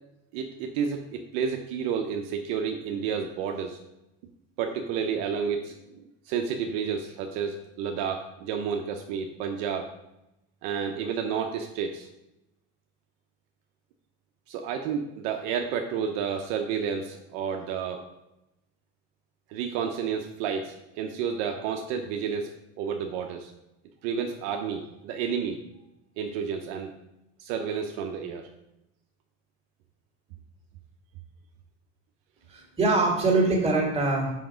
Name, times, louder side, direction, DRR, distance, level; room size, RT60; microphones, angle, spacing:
voice 1, 0.3-3.8 4.6-9.9 10.6-12.1 14.5-18.0 19.5-23.5 24.0-25.6 26.2-26.9 27.4-28.5, right 7 dB, 60° right, 4 dB, 0.8 m, -31 dB
voice 2, 32.5-34.4, right 3 dB, 15° right, -1 dB, 2.1 m, -23 dB
5.8 x 5.3 x 5.0 m, 0.91 s
supercardioid pair, 130°, 35 cm